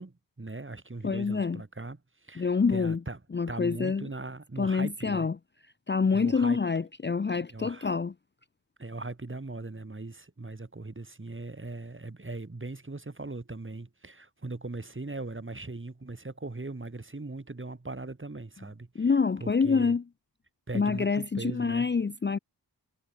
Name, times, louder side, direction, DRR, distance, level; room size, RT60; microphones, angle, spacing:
voice 1, 0.0-3.2 3.5-5.3 6.1-6.6 7.5-7.9 8.8-19.1 19.4-19.9 20.7-21.9, right 2 dB, 30° right, 3.0 m, -39 dB
voice 2, 1.0-1.6 2.4-3.0 3.3-4.1 4.6-5.4 5.9-8.1 19.0-20.0 20.7-22.4, left 5 dB, 25° left, 0.6 m, -26 dB
cardioid pair, 60°, 43 cm